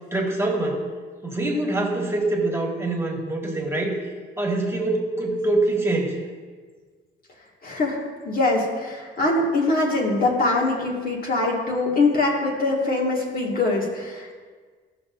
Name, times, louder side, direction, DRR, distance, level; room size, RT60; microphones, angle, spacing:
voice 1, 0.1-0.8 1.2-4.0 4.4-6.2, right 2 dB, 15° right, -1 dB, 1.7 m, -24 dB
voice 2, 7.6-8.0 8.3-14.3, left 2 dB, 45° left, -2 dB, 1.9 m, -23 dB
16.5 x 5.9 x 2.6 m, 1.5 s
cardioid pair, 90°, 20 cm